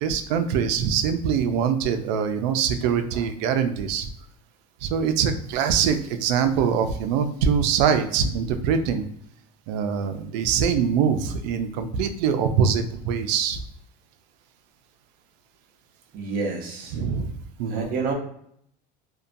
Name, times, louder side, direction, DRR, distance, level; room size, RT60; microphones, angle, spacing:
voice 1, 0.0-4.1 4.8-9.1 9.7-13.6 16.9-17.3 17.6-17.9, right 7 dB, 80° right, 8 dB, 0.4 m, -23 dB
voice 2, 16.1-17.0 17.7-18.1, right 4 dB, 45° right, 0 dB, 0.7 m, -28 dB
2.7 x 2.2 x 2.5 m, 0.69 s
cardioid pair, 150°, 21 cm